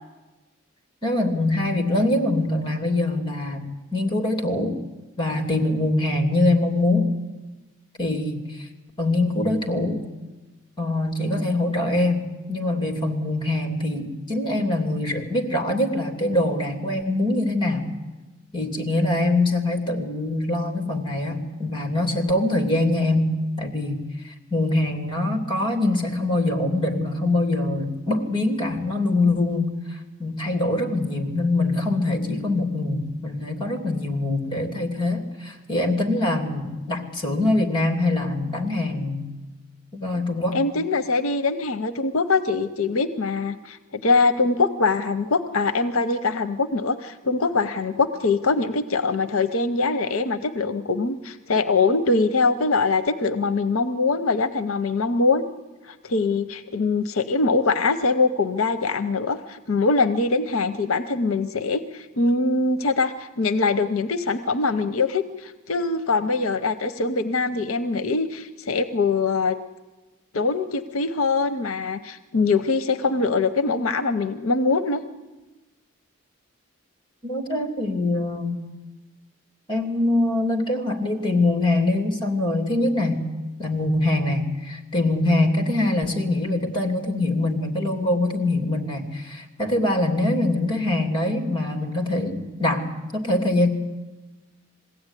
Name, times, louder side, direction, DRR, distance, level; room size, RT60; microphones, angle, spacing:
voice 1, 1.0-3.6 3.9-4.8 5.2-7.1 8.0-8.7 9.0-10.0 10.8-17.9 18.5-39.3 39.9-40.6 77.2-78.7 79.7-83.3 83.6-92.8 93.1-93.7, left 2 dB, 20° left, 5 dB, 2.8 m, -23 dB
voice 2, 40.5-55.4 55.9-69.6 70.3-75.0, left 3 dB, 75° left, 11 dB, 0.8 m, -23 dB
21.5 x 16.0 x 9.9 m, 1.2 s
head